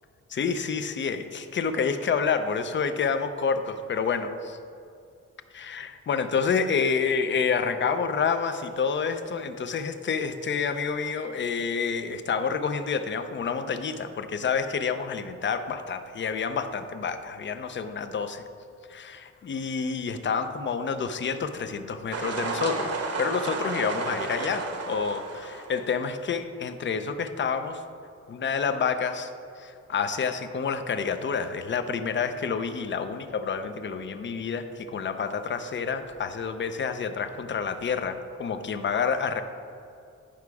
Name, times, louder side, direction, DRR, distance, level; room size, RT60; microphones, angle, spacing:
voice 1, 0.3-4.5 5.5-18.4 18.9-22.9 23.2-27.8 28.3-29.3 29.6-39.4, left 6 dB, 40° left, 9 dB, 0.5 m, -28 dB
sound 1, 22.1-25.9, right 3 dB, 55° right, 1.1 m, -32 dB
10.0 x 5.9 x 4.7 m, 2.5 s
wide cardioid pair, 160°, 29 cm